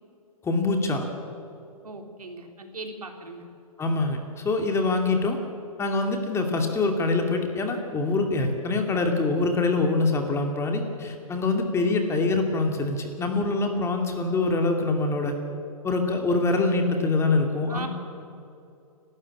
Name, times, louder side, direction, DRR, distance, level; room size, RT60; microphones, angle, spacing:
voice 1, 0.4-1.0 3.8-5.4 5.8-15.3 15.8-17.9, left 3 dB, 15° left, 4 dB, 2.5 m, -24 dB
voice 2, 1.8-3.5 17.7-17.9, right 3 dB, 80° right, 3 dB, 3.5 m, -38 dB
29.5 x 13.0 x 8.6 m, 2.5 s
figure-of-eight pair, 120°, 19 cm